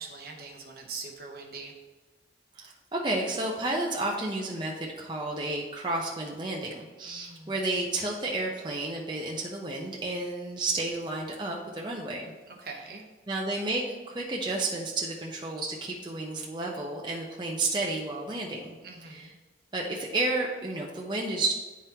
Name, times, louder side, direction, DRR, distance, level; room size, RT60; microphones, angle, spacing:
voice 1, 0.0-1.7 7.0-7.6 12.5-13.0 18.8-19.3, right 4 dB, 55° right, 2 dB, 0.8 m, -42 dB
voice 2, 2.5-12.3 13.3-18.8 19.1-19.3 19.7-21.5, right 2 dB, 25° right, -2 dB, 0.6 m, -31 dB
10.0 x 3.5 x 2.8 m, 1.2 s
head